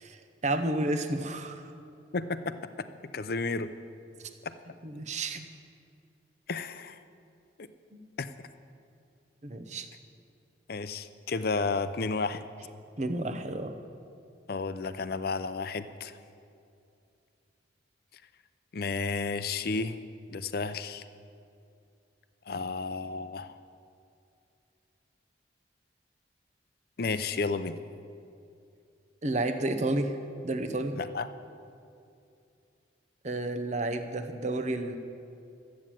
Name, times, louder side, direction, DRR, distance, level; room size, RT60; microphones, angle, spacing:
voice 1, 0.0-1.7 4.8-5.5 7.9-8.0 9.4-9.9 13.0-13.7 29.2-30.2 30.4-31.0 33.2-35.0, right 2 dB, 40° right, 8 dB, 0.8 m, -31 dB
voice 2, 2.1-2.9 3.1-3.7 4.4-4.5 6.5-7.0 7.6-7.7 8.2-8.3 10.7-12.4 14.5-16.2 18.7-20.0 20.3-21.0 22.5-23.6 27.0-27.8 30.9-31.3, left 4 dB, 55° left, 12 dB, 0.5 m, -32 dB
13.0 x 8.6 x 7.5 m, 2.5 s
head